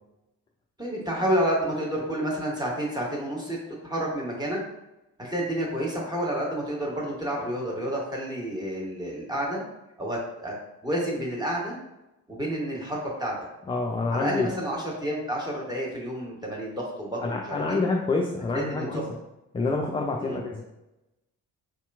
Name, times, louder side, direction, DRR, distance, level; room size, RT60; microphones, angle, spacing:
voice 1, 0.8-3.6 3.8-4.6 5.2-9.6 10.0-10.5 10.8-11.8 12.3-13.3 14.1-17.8 18.5-19.0 20.2-20.4, right 1 dB, 10° right, -4 dB, 1.3 m, -29 dB
voice 2, 13.7-14.5 17.2-19.1 19.5-20.6, left 3 dB, 15° left, 0 dB, 0.4 m, -27 dB
5.2 x 2.8 x 2.3 m, 0.94 s
figure-of-eight pair, 40°, 43 cm